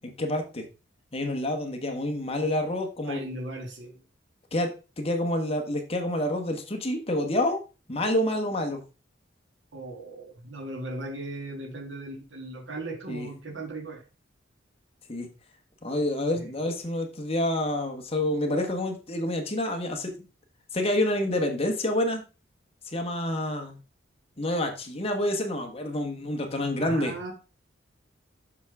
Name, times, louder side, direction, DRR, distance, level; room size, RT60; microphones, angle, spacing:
voice 1, 0.2-0.6 1.1-3.2 4.5-7.6 7.9-8.8 13.1-13.3 15.1-15.3 15.8-20.3 20.7-22.2 22.9-23.7 24.4-27.1, left 1 dB, 30° left, 3 dB, 1.3 m, -28 dB
voice 2, 3.1-4.0 9.7-14.0 16.4-16.5 26.8-27.3, right 2 dB, 75° right, 4 dB, 1.9 m, -37 dB
7.4 x 6.0 x 3.5 m, 0.32 s
head